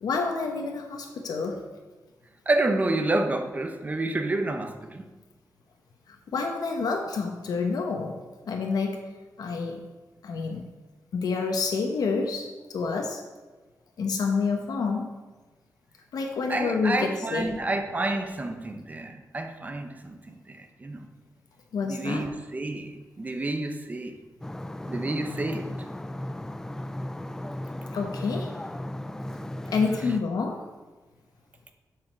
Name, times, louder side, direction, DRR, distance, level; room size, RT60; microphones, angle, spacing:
voice 1, 0.0-1.6 6.1-8.1 8.5-9.0 9.4-9.8 10.2-10.6 11.1-13.2 14.0-15.1 16.1-17.5 21.7-22.3 27.9-28.5 29.7-30.6, left 4 dB, 90° left, 2 dB, 0.9 m, -28 dB
voice 2, 2.5-5.1 16.5-21.1 21.8-24.2 24.9-25.7, right 2 dB, 25° right, 6 dB, 0.7 m, -29 dB
sound 1, 24.4-30.2, left 1 dB, 10° left, 0.3 m, -35 dB
7.5 x 4.9 x 6.0 m, 1.3 s
wide cardioid pair, 150°, 6 cm